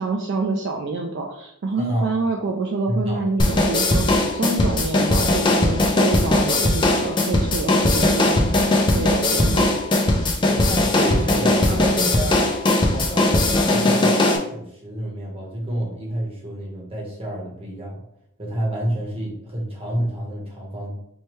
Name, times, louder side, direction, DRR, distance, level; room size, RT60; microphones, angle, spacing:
voice 1, 0.0-8.4 8.9-9.7, right 3 dB, 50° right, 1 dB, 0.3 m, -27 dB
voice 2, 1.8-2.2 2.9-3.3 10.4-18.0 18.4-20.9, equal, 25° right, -3 dB, 1.0 m, -29 dB
sound 1, 3.4-14.4, left 2 dB, 20° left, 0.4 m, -19 dB
4.5 x 2.2 x 3.0 m, 0.78 s
head